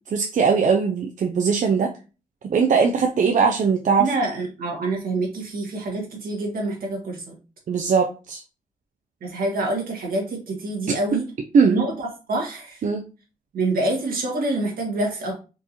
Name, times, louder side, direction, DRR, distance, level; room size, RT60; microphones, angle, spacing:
voice 1, 0.1-1.9 2.5-4.1 7.7-8.4 11.5-11.8 12.8-13.0, right 5 dB, 60° right, 4 dB, 0.5 m, -20 dB
voice 2, 4.0-7.3 9.2-11.3 11.7-12.8 13.5-15.3, right 2 dB, 80° right, 0 dB, 1.5 m, -26 dB
4.4 x 2.7 x 2.9 m, 0.33 s
cardioid pair, 70°, 15 cm